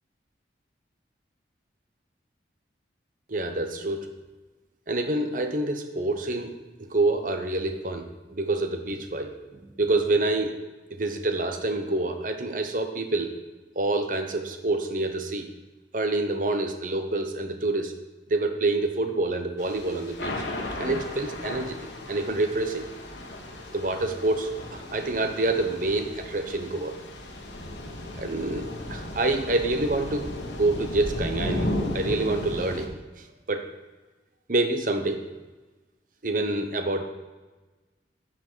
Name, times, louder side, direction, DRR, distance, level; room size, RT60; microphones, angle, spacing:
voice 1, 3.3-4.1 4.9-6.5 6.8-10.5 10.9-13.3 13.8-15.5 15.9-17.9 18.3-20.4 20.8-22.9 23.7-27.0 28.2-32.9 33.2-33.6 34.5-35.2 36.2-37.0, right 2 dB, 45° right, 7 dB, 0.9 m, -27 dB
Thunder / Rain, 19.6-32.9, left 1 dB, 75° left, 1.3 m, -35 dB
10.5 x 6.1 x 4.6 m, 1.2 s
head